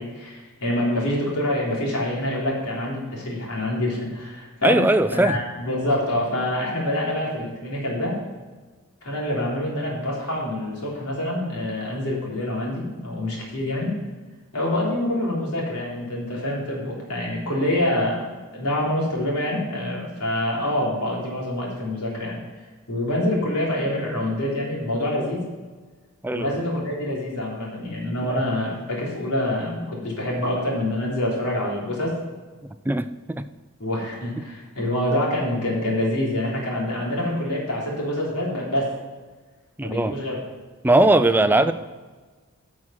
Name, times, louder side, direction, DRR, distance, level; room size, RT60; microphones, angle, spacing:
voice 1, 0.0-4.8 5.1-8.2 9.0-13.9 14.5-25.4 26.3-32.1 33.8-38.9 39.8-40.4 41.0-41.6, left 1 dB, 90° left, -4 dB, 3.6 m, -26 dB
voice 2, 4.6-5.4 26.2-26.6 28.3-28.4 32.9-33.5 39.8-40.1 40.8-41.7, right 2 dB, 10° right, 11 dB, 0.3 m, -19 dB
11.0 x 6.3 x 5.8 m, 1.4 s
head